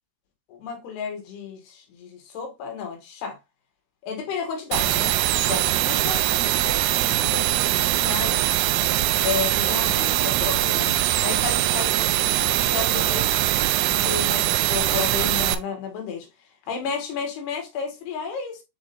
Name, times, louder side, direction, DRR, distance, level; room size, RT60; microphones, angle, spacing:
voice 1, 0.5-3.4 4.0-5.1 5.5-8.5 9.2-10.9 11.2-13.3 13.8-16.3 16.7-18.6, left 6 dB, 80° left, 3.8 m, -32 dB
sound 1, 4.7-15.6, right 14 dB, 90° right, 2.7 m, -22 dB
8.7 x 4.3 x 2.6 m
omnidirectional pair, 4.7 m